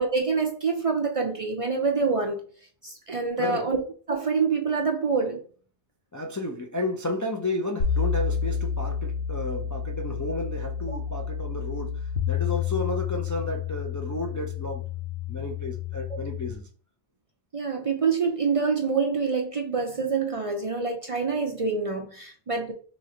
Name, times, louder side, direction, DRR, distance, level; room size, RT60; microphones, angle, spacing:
voice 1, 0.0-2.4 2.8-3.8 4.1-5.4 16.1-16.2 17.5-22.7, right 5 dB, 45° right, 0.5 m, -26 dB
voice 2, 3.4-3.7 6.1-14.9 15.3-16.6, left 1 dB, 30° left, 0.3 m, -32 dB
sound 1, 7.8-16.5, left 7 dB, 75° left, 1.0 m, -30 dB
3.2 x 3.1 x 3.8 m
omnidirectional pair, 1.1 m